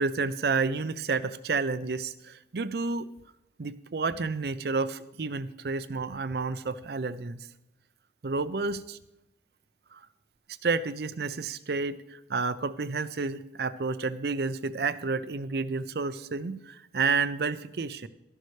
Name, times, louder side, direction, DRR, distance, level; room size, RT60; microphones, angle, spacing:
voice 1, 0.0-3.1 3.6-7.5 8.2-9.0 9.9-10.0 10.6-18.1, right 4 dB, 65° right, 14 dB, 0.5 m, -30 dB
13.0 x 11.0 x 3.2 m, 0.90 s
head